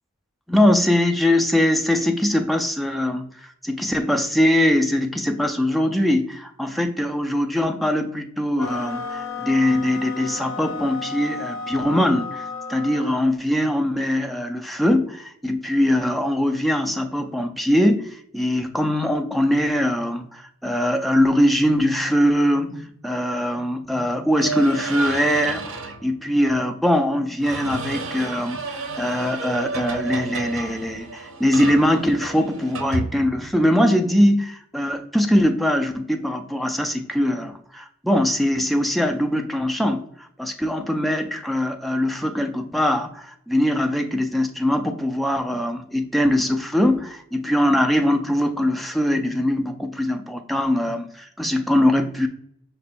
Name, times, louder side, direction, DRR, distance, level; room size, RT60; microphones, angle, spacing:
voice 1, 0.5-52.3, left 1 dB, ahead, 4 dB, 0.4 m, -22 dB
sound 1, 8.6-13.2, left 4 dB, 75° left, 0.7 m, -33 dB
sound 2, 24.3-26.0 27.4-33.7, right 4 dB, 75° right, 0.6 m, -32 dB
5.3 x 2.2 x 4.1 m, 0.68 s
head